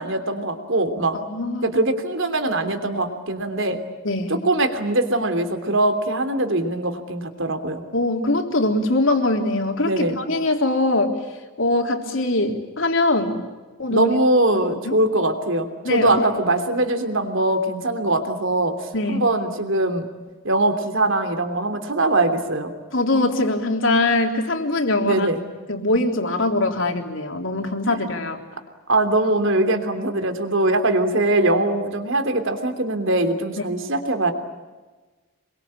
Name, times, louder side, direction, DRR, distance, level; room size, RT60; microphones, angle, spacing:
voice 1, 0.0-1.2 1.6-3.8 4.3-7.8 9.8-10.2 13.9-18.8 19.1-20.1 20.4-22.7 25.0-25.4 27.9-28.0 28.9-34.3, right 2 dB, 65° right, 7 dB, 3.1 m, -22 dB
voice 2, 1.1-1.7 4.0-4.4 7.9-11.2 11.6-13.4 13.8-14.1 14.9-15.0 15.8-16.3 18.9-19.3 22.9-25.3 25.7-28.4, left 2 dB, 65° left, 3 dB, 3.6 m, -22 dB
27.0 x 23.0 x 8.9 m, 1.3 s
head